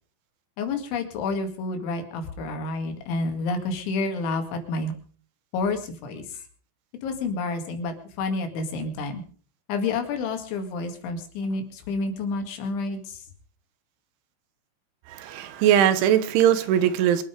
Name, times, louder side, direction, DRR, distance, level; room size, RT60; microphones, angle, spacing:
voice 1, 0.6-4.9 5.5-6.4 7.0-9.2 9.7-13.3, left 3 dB, 75° left, 4.4 m, -29 dB
voice 2, 15.1-17.2, right 10 dB, 80° right, 3.6 m, -20 dB
24.5 x 9.1 x 5.1 m
omnidirectional pair, 5.4 m